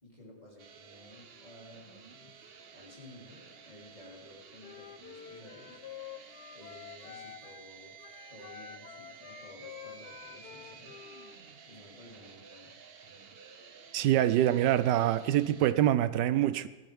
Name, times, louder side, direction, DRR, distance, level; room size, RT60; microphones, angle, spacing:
voice 1, 0.0-2.4 2.7-5.8 6.5-8.0 8.3-12.7, left 1 dB, 25° left, 3.6 m, -54 dB
sound 1, 0.6-15.7, right 6 dB, 45° right, 0.9 m, -52 dB
Wind instrument woodwind instrument, 4.6-7.7 8.0-11.4, left 10 dB, 75° left, 1.2 m, -49 dB
voice 2, 13.9-16.7, right 12 dB, 90° right, 1.3 m, -25 dB
19.5 x 14.0 x 3.6 m
omnidirectional pair, 1.8 m